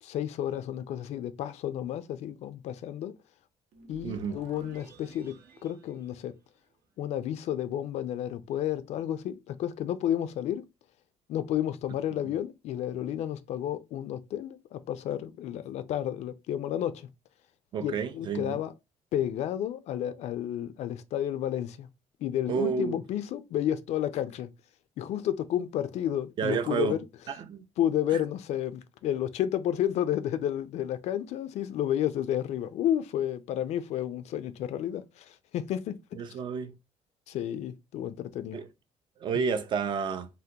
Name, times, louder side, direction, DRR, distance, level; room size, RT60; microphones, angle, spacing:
voice 1, 0.0-3.1 3.9-5.4 5.6-6.4 7.0-10.6 11.3-17.1 17.8-18.7 19.1-21.9 22.2-24.5 25.0-27.0 27.8-36.0 37.3-38.6, left 11 dB, 60° left, 0.4 m, -31 dB
sound 1, 3.7-7.0, right 5 dB, 75° right, 0.8 m, -53 dB
voice 2, 4.0-4.4 12.2-12.3 17.7-18.6 22.5-23.0 26.4-27.0 27.3-27.6 36.1-36.7 38.5-38.7 39.2-40.3, right 6 dB, 40° right, 0.4 m, -30 dB
3.5 x 2.1 x 2.7 m
cardioid pair, 175°, 13 cm